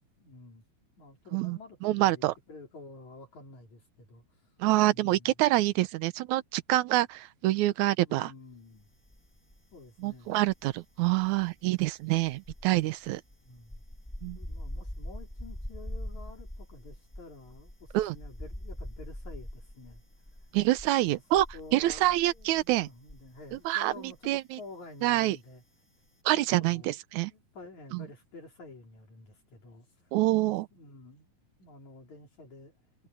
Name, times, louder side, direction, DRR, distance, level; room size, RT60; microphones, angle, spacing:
voice 1, 0.2-0.6 1.0-4.4 4.9-5.3 8.0-8.9 9.7-10.3 13.4-13.8 14.4-20.0 20.4-20.5 21.1-25.6 26.6-27.0 27.3-30.1 30.7-31.3 31.6-32.7, left 3 dB, 65° left, 5.7 m, -50 dB
voice 2, 1.3-2.3 4.6-8.3 10.0-13.2 14.2-14.4 17.9-18.2 20.5-21.5 21.7-22.9 23.7-24.6 25.0-25.4 26.3-27.3 27.9-28.1 30.1-30.7, right 16 dB, 75° right, 2.1 m, -26 dB
sound 1, 9.0-9.9 10.1-23.7 23.9-24.2, equal, 5° left, 1.2 m, -43 dB
omnidirectional pair, 3.5 m